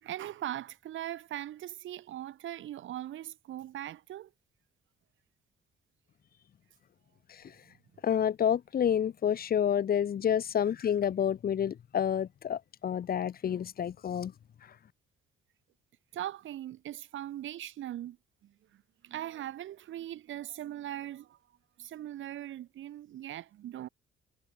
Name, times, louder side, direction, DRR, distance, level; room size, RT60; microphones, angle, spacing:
voice 1, 0.0-4.3 16.1-18.2 18.4-21.4 21.8-23.9, right 12 dB, 80° right, 5.1 m, -40 dB
voice 2, 8.0-14.3, left 9 dB, 50° left, 0.9 m, -29 dB
cardioid pair, 90°, 20 cm